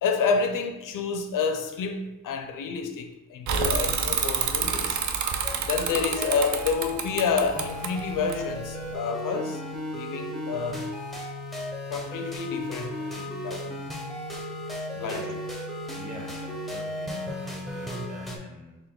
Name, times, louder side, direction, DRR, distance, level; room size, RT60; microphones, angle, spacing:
voice 1, 0.0-5.0 5.6-9.6 9.9-10.9 11.9-13.7 15.0-15.2, left 5 dB, 75° left, 0.6 m, -29 dB
Bicycle / Mechanisms, 3.5-8.9, right 6 dB, 60° right, 0.5 m, -28 dB
sound 1, 5.4-18.4, left 1 dB, ahead, 0.5 m, -35 dB
voice 2, 14.9-15.4 15.9-18.8, right 2 dB, 30° right, 1.1 m, -44 dB
4.1 x 2.5 x 3.6 m
cardioid pair, 110°, 32 cm